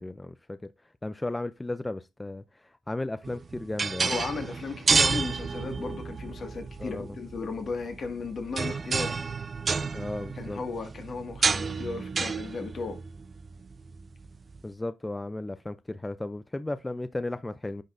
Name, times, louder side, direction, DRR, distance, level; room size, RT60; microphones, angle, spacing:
voice 1, 0.0-4.2 6.8-7.2 9.9-10.6 14.6-17.8, left 2 dB, 15° left, 0.4 m, -35 dB
sound 1, 3.2-14.6, right 4 dB, 45° right, 0.4 m, -30 dB
voice 2, 4.0-9.2 10.4-13.0, left 4 dB, 60° left, 1.8 m, -35 dB
10.0 x 3.9 x 2.5 m
cardioid pair, 75°, 0 cm